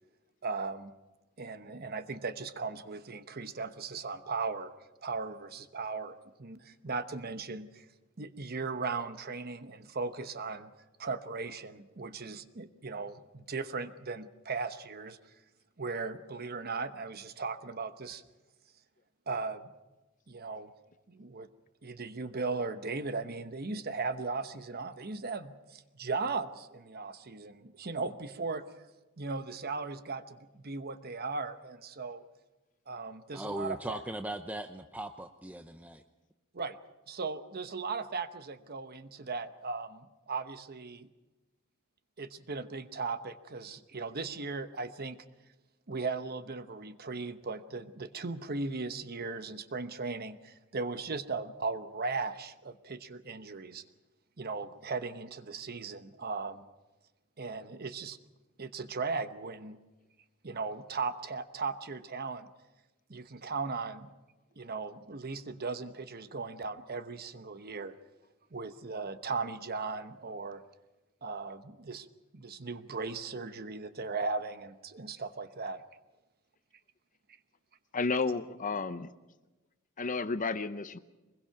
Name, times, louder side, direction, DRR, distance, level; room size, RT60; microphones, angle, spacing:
voice 1, 0.4-0.9 1.4-4.7 5.0-7.9 8.2-10.7 11.0-15.2 15.8-18.2 19.3-19.7 20.3-20.7 21.1-21.5 21.8-28.7 29.2-32.2 32.9-34.0 36.5-36.8 37.1-41.1 42.2-45.2 45.9-53.8 54.4-56.6 57.4-58.2 58.6-59.8 60.4-62.5 63.1-64.1 64.6-67.9 68.5-70.6 71.2-72.1 72.3-75.8, right 4 dB, 45° right, 1.0 m, -37 dB
voice 2, 33.3-36.0, right 1 dB, 5° right, 0.6 m, -39 dB
voice 3, 77.9-79.1 80.0-81.0, left 4 dB, 40° left, 0.8 m, -32 dB
23.5 x 21.0 x 5.9 m
head